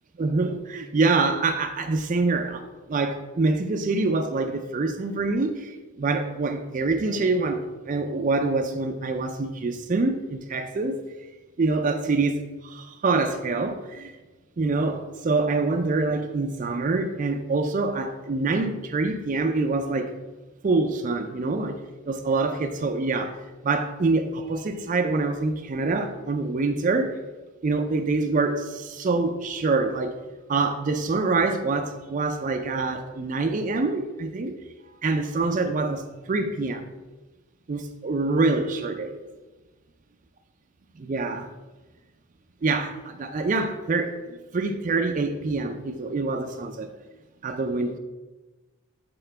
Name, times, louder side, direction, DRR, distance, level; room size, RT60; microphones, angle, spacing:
voice 1, 0.2-11.0 11.6-14.1 14.6-20.1 20.6-21.8 22.1-23.4 23.6-27.1 27.6-30.1 30.5-34.5 35.0-36.0 36.3-36.8 37.7-39.2 41.0-41.5 42.6-46.9 47.4-48.0, right 3 dB, 40° right, 5 dB, 0.4 m, -25 dB
7.9 x 3.7 x 3.3 m, 1.2 s
head